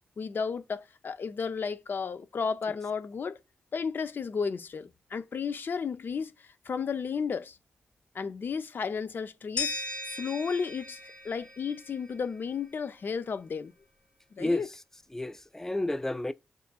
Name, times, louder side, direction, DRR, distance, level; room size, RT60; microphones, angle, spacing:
voice 1, 0.2-3.4 3.7-6.3 6.7-7.6 8.1-9.7 10.0-13.7 14.3-14.7, left 5 dB, 60° left, 0.6 m, -33 dB
sound 1, 9.6-12.5, left 3 dB, 30° left, 1.3 m, -38 dB
voice 2, 14.4-14.8 15.1-16.3, left 1 dB, 10° left, 0.4 m, -31 dB
6.4 x 2.5 x 2.3 m
supercardioid pair, 40°, 4 cm